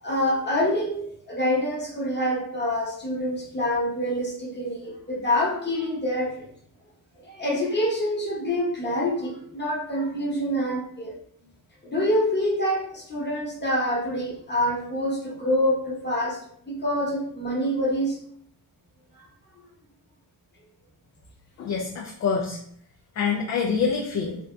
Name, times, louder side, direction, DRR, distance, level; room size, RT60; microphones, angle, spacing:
voice 1, 0.0-1.0 1.3-6.5 7.2-11.1 11.8-16.4 16.6-18.2, left 1 dB, 25° left, -4 dB, 1.0 m, -26 dB
voice 2, 21.6-22.6 23.2-24.4, left 5 dB, 45° left, 0 dB, 0.4 m, -26 dB
3.4 x 2.6 x 2.2 m, 0.66 s
cardioid pair, 110°, 39 cm